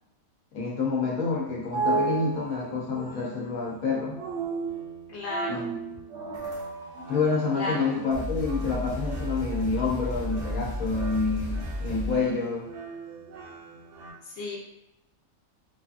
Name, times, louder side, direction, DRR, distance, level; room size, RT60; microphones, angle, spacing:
voice 1, 0.5-4.2 5.5-5.8 6.1-6.4 7.1-12.7, left 4 dB, 80° left, -4 dB, 1.1 m, -28 dB
sound 1, 1.3-14.1, right 4 dB, 65° right, 0.8 m, -36 dB
voice 2, 5.1-5.7 7.5-7.9 14.2-14.6, left 2 dB, 55° left, -3 dB, 0.9 m, -33 dB
sound 2, 6.3-7.0 7.7-7.8 8.1-12.3, left 1 dB, 30° left, 0.6 m, -33 dB
2.7 x 2.6 x 2.4 m, 0.84 s
omnidirectional pair, 1.5 m